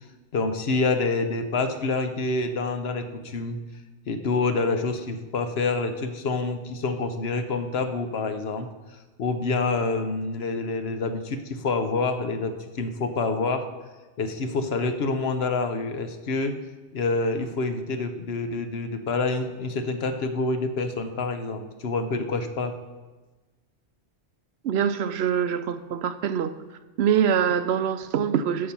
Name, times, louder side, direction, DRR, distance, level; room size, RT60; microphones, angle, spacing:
voice 1, 0.3-3.6 4.1-8.7 9.2-13.7 14.2-16.6 16.9-22.7, left 3 dB, 65° left, 8 dB, 1.0 m, -27 dB
voice 2, 24.6-26.5 27.0-28.7, right 8 dB, 70° right, 11 dB, 0.8 m, -24 dB
8.7 x 6.8 x 5.5 m, 1.2 s
omnidirectional pair, 1.2 m